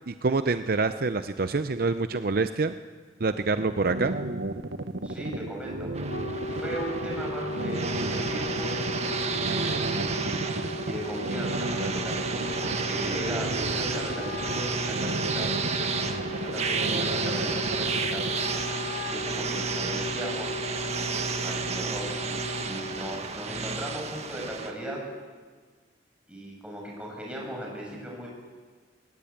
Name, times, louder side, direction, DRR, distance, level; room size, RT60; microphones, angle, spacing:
voice 1, 0.1-2.7 3.2-4.1 16.1-16.4, right 3 dB, 55° right, 11 dB, 0.6 m, -26 dB
sound 1, 3.6-18.3, right 2 dB, 85° right, 1.2 m, -33 dB
voice 2, 5.0-5.9 6.4-8.8 9.8-10.6 10.8-15.5 16.3-18.2 19.1-20.6 21.4-25.0 26.3-28.3, right 1 dB, 5° right, -2 dB, 6.7 m, -38 dB
Wind instrument woodwind instrument, 5.8-23.3, left 1 dB, 60° left, 1.0 m, -37 dB
sound 2, 5.9-24.7, right 4 dB, 40° right, 1.6 m, -32 dB
21.0 x 19.0 x 8.7 m, 1.5 s
head